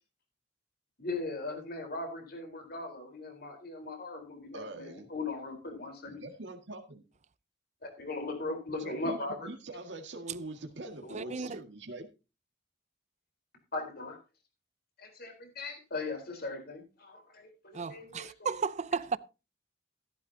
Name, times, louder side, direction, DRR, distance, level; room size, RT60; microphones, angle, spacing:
voice 1, 1.0-6.2 7.8-9.5 11.0-11.5 13.7-14.2 15.0-18.5, left 2 dB, 55° left, 4.1 m, -39 dB
voice 2, 4.5-5.1 6.1-7.0 8.8-12.1, right 2 dB, 70° right, 1.9 m, -43 dB
voice 3, 11.1-11.6 17.7-19.2, right 5 dB, 40° right, 0.6 m, -34 dB
15.0 x 12.0 x 2.8 m
head